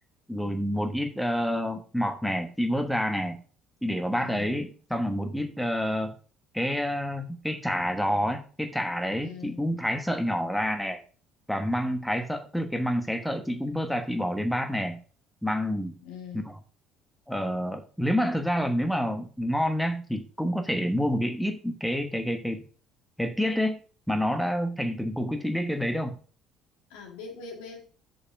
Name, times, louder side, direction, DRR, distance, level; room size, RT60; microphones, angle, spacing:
voice 1, 0.3-3.4 3.8-6.1 6.5-11.0 11.5-15.0 15.4-15.9 17.3-22.6 23.2-23.8 24.1-26.2, equal, ahead, 1.2 m, -28 dB
voice 2, 4.1-4.6 9.2-9.6 16.0-16.5 26.9-27.9, left 6 dB, 70° left, 1.9 m, -42 dB
6.6 x 5.1 x 6.0 m
figure-of-eight pair, 55°, 0 cm